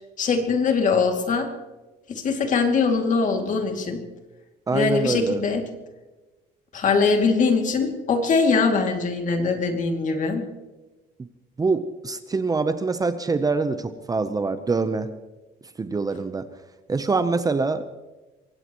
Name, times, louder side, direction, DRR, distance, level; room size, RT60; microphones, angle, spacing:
voice 1, 0.2-1.5 2.1-4.0 4.7-5.6 6.7-10.5, left 4 dB, 50° left, 4 dB, 2.5 m, -22 dB
voice 2, 4.7-5.4 11.6-15.1 15.8-16.5 16.9-17.9, right 4 dB, 20° right, 11 dB, 0.8 m, -24 dB
23.5 x 18.0 x 3.1 m, 1.2 s
cardioid pair, 110°, 17 cm